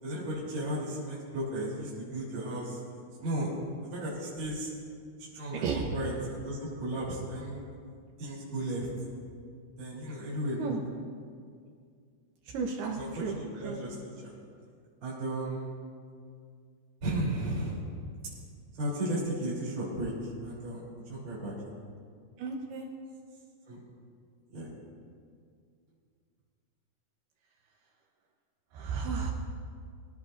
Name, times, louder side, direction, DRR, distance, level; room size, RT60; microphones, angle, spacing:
voice 1, 0.0-2.8 3.2-3.5 3.9-4.7 5.3-5.7 5.9-7.6 8.2-8.9 9.8-10.8 13.0-13.9 14.2-14.3 15.0-15.7 17.0-17.8 18.8-20.1 20.4-20.8 21.1-21.5 23.7-23.8 24.5-24.7, right 1 dB, 30° right, -7 dB, 3.6 m, -34 dB
voice 2, 5.5-5.9 10.6-10.8 12.5-13.4 13.6-13.8 22.4-22.9 28.7-29.3, right 5 dB, 75° right, 1 dB, 2.5 m, -33 dB
24.5 x 16.5 x 2.6 m, 2.2 s
omnidirectional pair, 5.6 m